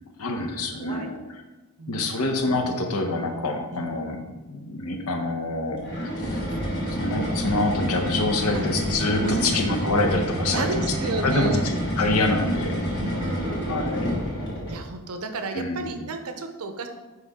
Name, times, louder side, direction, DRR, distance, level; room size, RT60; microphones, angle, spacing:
voice 1, 0.2-1.2 1.9-4.2 4.5-6.4 6.9-10.9 11.2-12.9 13.7-14.1 15.5-16.1, left 2 dB, 80° left, 3 dB, 0.9 m, -26 dB
voice 2, 1.8-2.2 3.7-4.0 8.5-8.7 9.2-9.5 10.5-11.6 13.0-13.8 14.7-16.9, right 3 dB, 85° right, 6 dB, 0.7 m, -32 dB
sound 1, 5.8-14.9, equal, 55° left, 1.6 m, -28 dB
9.3 x 3.2 x 3.6 m, 1.2 s
head